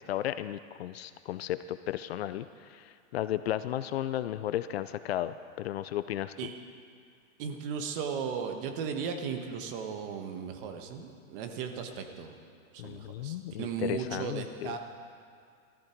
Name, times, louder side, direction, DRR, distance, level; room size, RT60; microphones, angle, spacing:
voice 1, 0.0-6.3 12.8-14.8, left 12 dB, 50° left, 13 dB, 0.5 m, -34 dB
voice 2, 7.4-12.3 12.7-14.8, right 6 dB, 40° right, 5 dB, 1.5 m, -36 dB
19.0 x 14.0 x 4.5 m, 2.3 s
hypercardioid pair, 155°, 42 cm